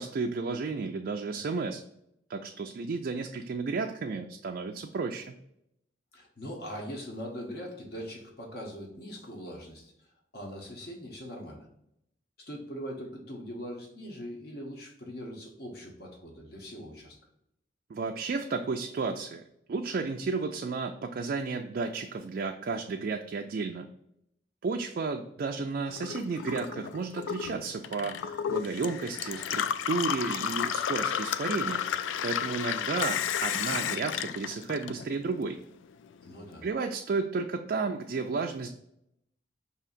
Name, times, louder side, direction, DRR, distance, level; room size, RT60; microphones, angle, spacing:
voice 1, 0.0-1.8 2.3-5.3 17.9-19.4 19.7-23.9 24.6-31.9 32.2-35.6 36.6-38.7, right 4 dB, 50° right, 3 dB, 0.3 m, -32 dB
voice 2, 6.1-9.9 10.3-11.7 12.4-17.2 36.2-36.7, equal, 55° left, 0 dB, 1.1 m, -41 dB
Gurgling / Water tap faucet / Sink (filling or washing), 25.9-35.4 35.7-36.6, left 8 dB, 90° left, 0.3 m, -32 dB
5.5 x 2.8 x 2.5 m, 0.77 s
head